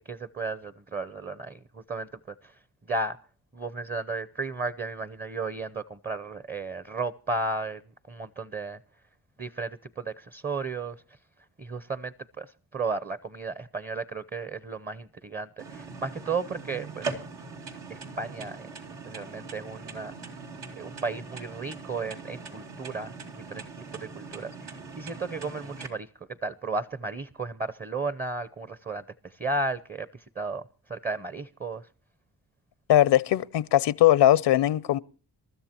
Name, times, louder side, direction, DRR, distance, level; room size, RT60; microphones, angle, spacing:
voice 1, 0.1-2.6 2.9-3.2 3.5-7.8 8.1-8.8 9.4-11.0 11.6-17.1 17.9-18.7 19.1-20.3 20.7-23.6 23.9-31.9, right 3 dB, 25° right, 0.7 m, -34 dB
sound 1, 15.6-25.9, right 4 dB, 85° right, 2.6 m, -41 dB
voice 2, 32.9-35.0, left 13 dB, 80° left, 0.6 m, -20 dB
28.0 x 13.0 x 2.9 m
cardioid pair, 60°, 41 cm